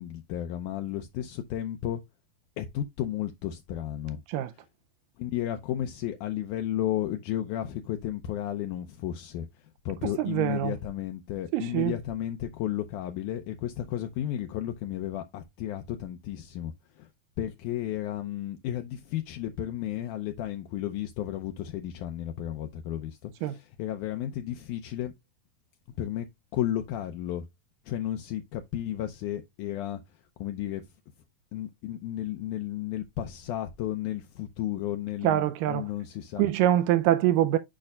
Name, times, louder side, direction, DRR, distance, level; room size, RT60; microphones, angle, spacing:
voice 1, 0.0-2.0 2.6-4.2 4.5-4.7 5.2-17.1 17.4-25.1 26.0-26.3 26.5-27.5 27.9-30.0 30.4-30.8 31.5-36.4, left 12 dB, 80° left, 1.9 m, -33 dB
voice 2, 10.2-10.7 11.5-11.9 23.4-23.5 35.2-35.9 36.4-37.6, right 12 dB, 80° right, 2.1 m, -24 dB
8.8 x 5.4 x 2.3 m
omnidirectional pair, 4.1 m